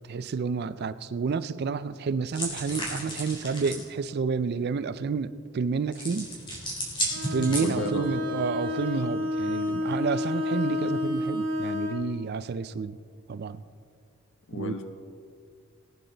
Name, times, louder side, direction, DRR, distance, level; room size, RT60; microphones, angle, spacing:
voice 1, 0.1-6.3 7.3-13.0 13.3-13.6 14.5-14.8, right 5 dB, 50° right, 14 dB, 0.4 m, -30 dB
sound 1, 2.3-3.9 5.9-8.0, equal, 25° left, 3.5 m, -33 dB
Bowed string instrument, 7.1-12.1, left 2 dB, 70° right, 2.0 m, -30 dB
voice 2, 7.6-8.2 14.5-14.8, left 2 dB, 60° left, 6 dB, 1.0 m, -32 dB
19.0 x 9.4 x 3.9 m, 2.1 s
head